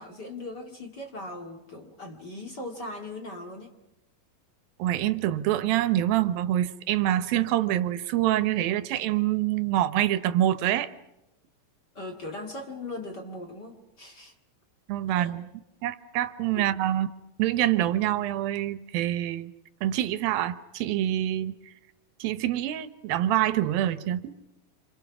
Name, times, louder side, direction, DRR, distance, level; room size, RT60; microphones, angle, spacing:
voice 1, 0.0-3.7 11.9-14.3 15.1-15.3 16.5-16.7, left 2 dB, 35° left, 3 dB, 2.4 m, -39 dB
voice 2, 4.8-10.9 14.9-15.4 15.8-17.1 17.4-19.5 19.8-21.5 22.2-24.3, right 13 dB, 85° right, 12 dB, 2.8 m, -26 dB
28.0 x 27.5 x 6.1 m, 0.92 s
omnidirectional pair, 4.1 m